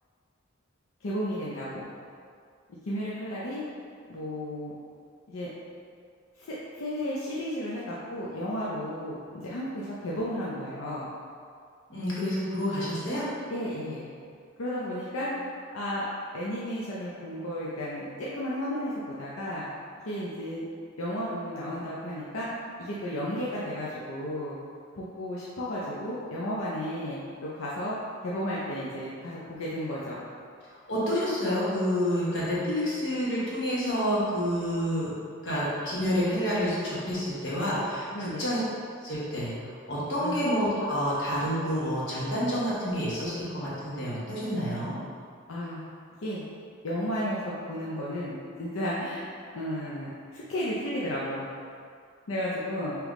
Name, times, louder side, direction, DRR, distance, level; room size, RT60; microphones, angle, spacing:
voice 1, 1.0-1.9 2.8-3.6 4.1-4.7 5.3-5.5 6.4-6.5 6.8-11.1 13.5-14.1 14.6-15.3 15.7-16.0 16.3-18.9 19.2-19.7 20.1-20.6 21.0-22.5 22.8-24.6 24.9-28.0 28.2-30.2 38.1-38.4 40.2-40.5 45.5-45.8 46.2-46.4 46.8-49.3 49.5-51.5 52.3-53.0, equal, 85° left, -7 dB, 0.5 m, -33 dB
voice 2, 11.9-13.3 30.9-35.1 35.4-38.6 39.0-39.5 39.9-45.0, equal, 60° left, -8 dB, 1.1 m, -28 dB
3.5 x 2.9 x 3.6 m, 2.2 s
head